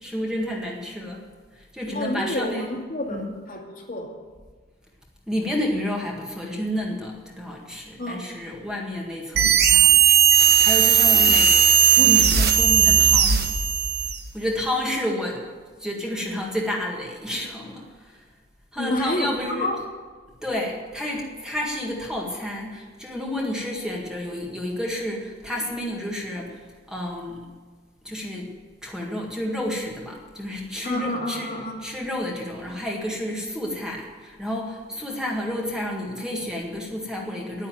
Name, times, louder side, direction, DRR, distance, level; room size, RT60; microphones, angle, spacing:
voice 1, 0.0-1.3 1.5-2.7 3.1-3.2 5.3-10.2 10.6-11.6 12.0-13.4 14.3-15.4 15.8-18.3 18.7-19.7 20.4-27.4 28.0-28.5 28.8-31.5 31.8-37.7, left 1 dB, 5° right, -2 dB, 1.8 m, -30 dB
voice 2, 1.9-4.1 8.0-8.2 11.1-11.4 11.9-12.2 18.8-19.8 30.8-31.8, left 1 dB, 45° left, 0 dB, 2.2 m, -29 dB
sound 1, 9.4-14.2, right 8 dB, 55° right, 1.2 m, -17 dB
10.0 x 9.9 x 9.4 m, 1.4 s
head